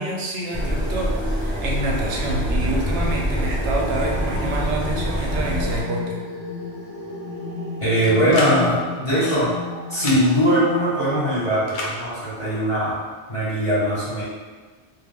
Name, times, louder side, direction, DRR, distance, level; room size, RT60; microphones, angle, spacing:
voice 1, 0.0-6.2, right 2 dB, 85° right, -1 dB, 0.9 m, -27 dB
sound 1, 0.5-5.8, equal, ahead, 0.6 m, -25 dB
sound 2, 1.6-11.5, left 3 dB, 50° right, 0.6 m, -34 dB
voice 2, 7.8-9.5 9.9-13.0 13.3-14.2, equal, 30° left, -11 dB, 1.1 m, -20 dB
sound 3, 8.0-8.6 9.9-10.2 11.7-11.9, left 2 dB, 80° left, 0.9 m, -29 dB
2.3 x 2.3 x 3.4 m, 1.4 s
omnidirectional pair, 1.2 m